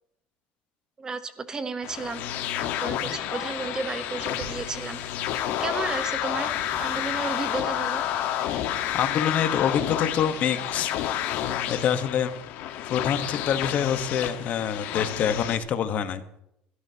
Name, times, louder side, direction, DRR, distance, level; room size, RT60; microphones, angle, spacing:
voice 1, 1.0-5.0 5.6-6.5 6.8-8.0, right 4 dB, 20° right, 10 dB, 1.0 m, -33 dB
sound 1, 1.8-15.6, left 11 dB, 65° left, 1.3 m, -30 dB
sound 2, 4.1-11.0, right 3 dB, 70° right, 7.0 m, -48 dB
voice 2, 8.9-10.9 11.7-12.3 12.9-16.2, left 8 dB, 45° left, 10 dB, 1.2 m, -26 dB
23.0 x 13.0 x 2.9 m, 0.79 s
cardioid pair, 145°, 4 cm